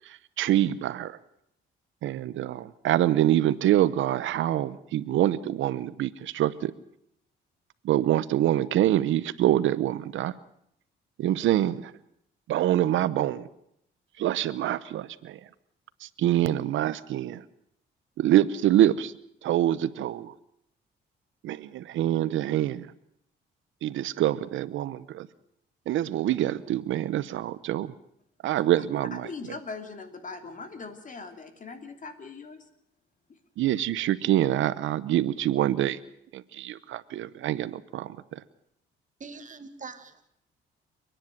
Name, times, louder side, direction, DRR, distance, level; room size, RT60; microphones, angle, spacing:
voice 1, 0.4-1.2 2.0-6.7 7.8-10.3 11.2-11.8 12.5-13.5 14.2-15.4 16.0-17.4 18.2-19.1 19.4-20.3 21.4-22.9 23.8-25.3 25.9-27.9 28.4-29.3 33.6-36.0 36.3-38.1, right 12 dB, 80° right, 16 dB, 0.8 m, -25 dB
voice 2, 28.8-32.7, left 4 dB, 40° left, 7 dB, 3.1 m, -41 dB
voice 3, 39.2-40.3, right 4 dB, 40° right, 9 dB, 2.0 m, -43 dB
29.0 x 10.5 x 9.1 m, 0.74 s
cardioid pair, 90°, 20 cm